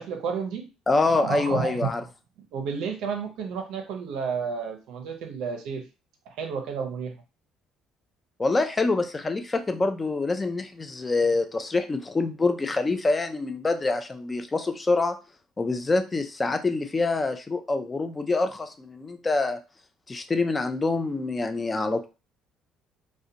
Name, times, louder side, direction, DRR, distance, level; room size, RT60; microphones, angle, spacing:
voice 1, 0.0-0.7 1.1-1.9 2.5-5.9 6.3-7.1, right 6 dB, 75° right, 4 dB, 0.5 m, -31 dB
voice 2, 0.9-2.0 8.4-15.2 15.6-19.6 20.1-22.1, left 3 dB, 15° left, 8 dB, 0.3 m, -26 dB
2.5 x 2.1 x 2.7 m, 0.30 s
cardioid pair, 145°, 0 cm